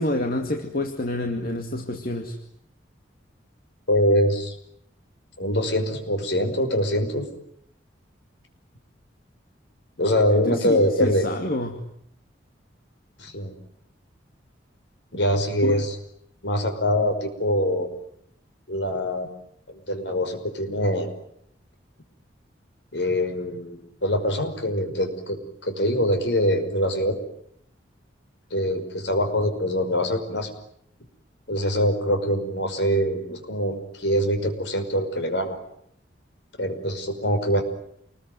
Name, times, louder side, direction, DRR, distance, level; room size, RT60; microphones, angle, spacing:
voice 1, 0.0-2.3 10.5-11.8 15.6-15.8, left 1 dB, 50° left, 3 dB, 2.4 m, -28 dB
voice 2, 3.9-4.6 5.4-7.3 10.0-11.3 13.2-13.5 15.1-16.0 16.4-17.9 18.7-19.3 19.7-21.1 22.9-27.2 28.5-30.5 31.5-35.6 36.6-37.6, equal, 70° left, 6 dB, 5.6 m, -24 dB
28.5 x 21.0 x 9.5 m, 0.71 s
head